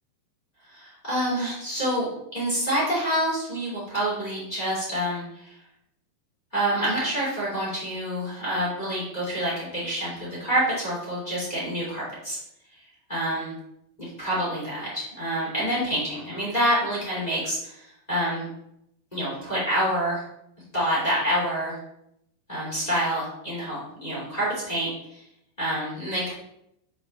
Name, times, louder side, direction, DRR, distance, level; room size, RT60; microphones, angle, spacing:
voice 1, 0.7-5.5 6.5-12.4 13.1-13.6 14.0-18.5 19.1-20.2 20.7-21.8 22.5-25.2 25.6-26.3, equal, 20° left, -6 dB, 1.0 m, -27 dB
6.8 x 5.1 x 3.3 m, 0.77 s
omnidirectional pair, 5.3 m